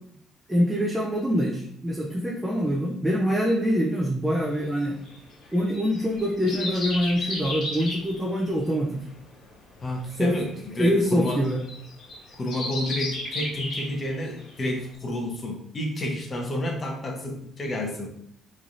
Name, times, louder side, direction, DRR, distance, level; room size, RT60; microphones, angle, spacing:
voice 1, 0.5-5.0 5.5-9.0 10.2-10.3 10.8-11.6, equal, 10° right, -1 dB, 0.5 m, -24 dB
sound 1, 4.5-14.5 14.9-15.0, left 2 dB, 50° left, 1.5 m, -35 dB
voice 2, 9.8-11.4 12.3-18.2, left 1 dB, 30° left, 2 dB, 0.8 m, -30 dB
3.7 x 3.1 x 2.6 m, 0.70 s
cardioid pair, 125°, 0 cm